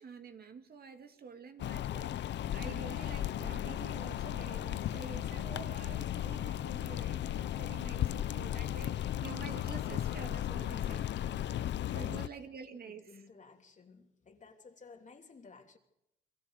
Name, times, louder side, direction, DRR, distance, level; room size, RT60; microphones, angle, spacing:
voice 1, 0.0-11.1 11.9-13.1, right 5 dB, 50° right, 2.3 m, -48 dB
sound 1, 1.6-12.3, left 11 dB, 65° left, 0.7 m, -35 dB
voice 2, 11.8-15.8, left 4 dB, 40° left, 3.1 m, -56 dB
29.0 x 22.5 x 5.0 m
cardioid pair, 90°, 20 cm